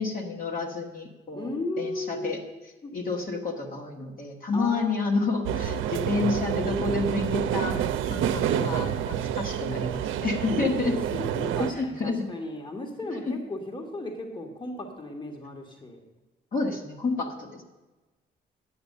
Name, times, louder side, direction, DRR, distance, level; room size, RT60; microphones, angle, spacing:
voice 1, 0.0-1.5 1.8-2.4 2.9-10.9 11.6-12.2 13.2-13.3 16.5-17.6, left 3 dB, 45° left, 1 dB, 1.7 m, -29 dB
voice 2, 1.3-2.5 2.8-2.9 4.5-5.0 5.5-5.8 10.5-16.0, left 2 dB, 25° left, 3 dB, 1.7 m, -36 dB
sound 1, 5.4-11.7, right 9 dB, 85° right, 0.6 m, -28 dB
10.5 x 7.0 x 6.6 m, 1.2 s
cardioid pair, 90°, 20 cm